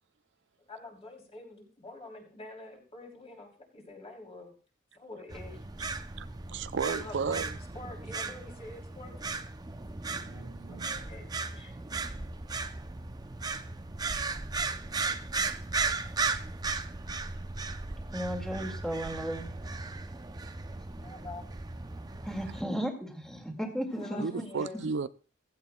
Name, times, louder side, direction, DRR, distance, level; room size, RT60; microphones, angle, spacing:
voice 1, 0.7-4.5 5.0-5.6 6.8-9.2 10.3-11.2 11.5-11.7 21.0-21.5 23.6-24.8, left 2 dB, 30° left, 3.1 m, -46 dB
sound 1, 5.3-22.6, right 3 dB, 20° right, 0.6 m, -36 dB
voice 2, 6.2-7.6 10.2-10.9 24.2-25.1, right 5 dB, 65° right, 0.4 m, -34 dB
voice 3, 18.1-19.5 22.2-24.2, equal, 5° left, 2.0 m, -35 dB
15.5 x 15.0 x 2.3 m
head